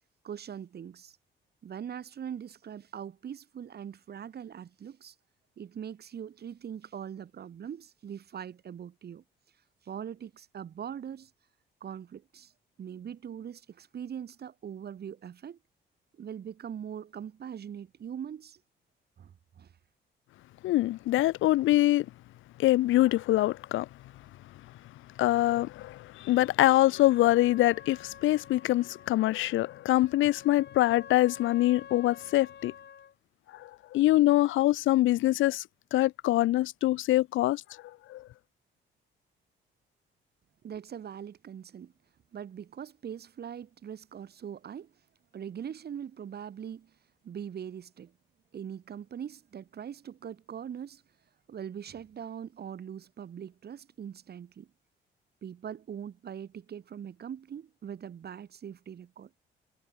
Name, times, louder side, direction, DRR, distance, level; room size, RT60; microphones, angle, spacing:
voice 1, 0.2-1.2 1.6-5.1 5.6-9.2 9.8-11.3 11.8-12.5 12.8-15.6 16.2-18.6 19.2-19.7 40.6-41.9 42.3-44.9 45.3-46.9 47.2-48.1 48.5-51.0 51.5-54.7 55.4-59.3, right 8 dB, 55° right, 2.2 m, -41 dB
voice 2, 20.6-22.1 22.6-23.9 25.2-32.7 33.5-35.6 35.9-37.6 38.1-38.3, left 16 dB, 85° left, 0.8 m, -24 dB
Trumpet, 26.9-33.1, left 8 dB, 55° left, 5.4 m, -49 dB
cardioid pair, 90°, 20 cm